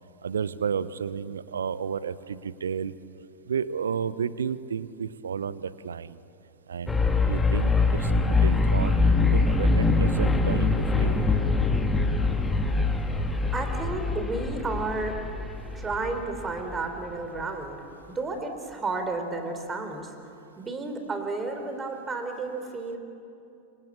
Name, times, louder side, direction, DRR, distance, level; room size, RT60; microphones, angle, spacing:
voice 1, 0.2-2.9 3.5-6.2 6.7-9.0 9.3-11.2, right 7 dB, 70° right, 17 dB, 0.8 m, -32 dB
sound 1, 6.9-16.8, left 3 dB, 10° left, 2.2 m, -24 dB
voice 2, 13.5-15.2 15.7-17.8 18.1-20.1 20.6-23.0, right 3 dB, 15° right, 6 dB, 3.6 m, -32 dB
27.5 x 25.0 x 8.6 m, 2.7 s
figure-of-eight pair, 90°, 0 cm